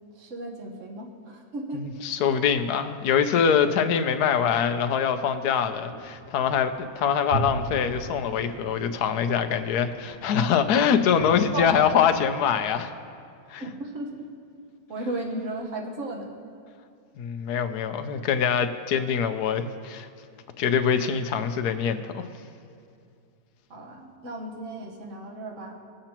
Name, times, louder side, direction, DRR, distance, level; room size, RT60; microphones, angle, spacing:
voice 1, 0.1-1.8 2.3-2.4 11.5-11.7 13.6-14.3 14.9-16.3 23.7-25.8, right 2 dB, 45° right, 0 dB, 1.5 m, -35 dB
voice 2, 1.7-12.9 13.5-13.6 17.2-20.1 20.6-22.3, left 7 dB, 70° left, 9 dB, 1.1 m, -24 dB
sound 1, 5.9-12.2, right 3 dB, 65° right, 0.9 m, -38 dB
21.0 x 7.7 x 3.0 m, 2.4 s
omnidirectional pair, 1.9 m